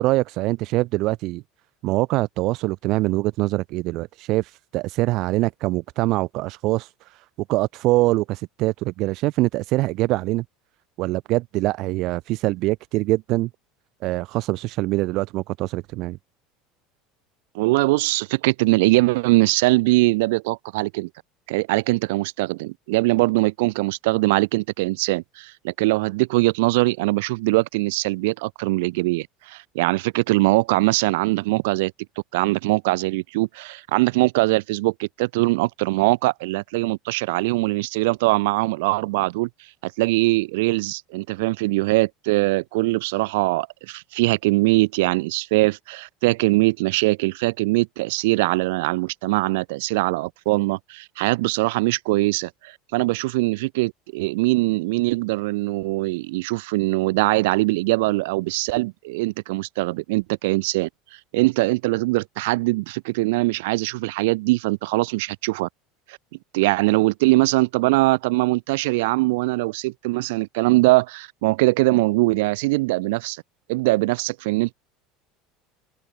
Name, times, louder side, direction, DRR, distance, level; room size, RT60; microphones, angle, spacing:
voice 1, 0.0-1.4 1.8-7.2 7.5-10.4 11.0-13.5 14.0-16.2, right 19 dB, 50° right, 0.8 m, -24 dB
voice 2, 17.5-21.1 21.5-31.9 32.3-39.5 39.8-60.9 61.3-65.7 66.5-73.4 73.7-74.7, right 22 dB, 90° right, 0.3 m, -22 dB
cardioid pair, 160°, 0 cm